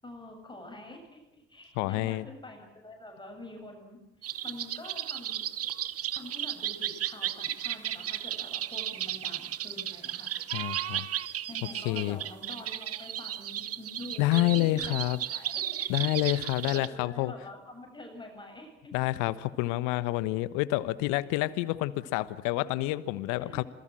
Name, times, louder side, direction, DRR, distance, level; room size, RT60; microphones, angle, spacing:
voice 1, 0.0-5.5 6.1-10.6 11.5-16.4 16.7-18.9 23.4-23.6, left 1 dB, 15° left, 2 dB, 7.5 m, -46 dB
voice 2, 1.7-2.3 10.5-11.1 11.8-12.2 14.2-15.2 15.9-17.3 18.9-23.6, left 18 dB, 65° left, 17 dB, 1.2 m, -28 dB
sound 1, 4.2-16.9, right 11 dB, 45° right, 1.3 m, -34 dB
27.5 x 19.5 x 7.7 m, 0.95 s
hypercardioid pair, 55°, 32 cm